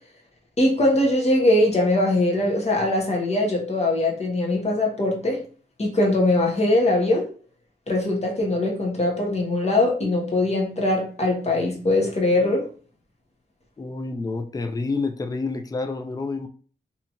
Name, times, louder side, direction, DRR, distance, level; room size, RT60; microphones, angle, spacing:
voice 1, 0.6-5.4 5.8-7.3 7.9-12.6, left 1 dB, 35° left, -1 dB, 0.9 m, -21 dB
voice 2, 13.8-16.5, left 3 dB, 20° left, 7 dB, 0.3 m, -28 dB
2.8 x 2.4 x 2.8 m, 0.42 s
wide cardioid pair, 100°, 19 cm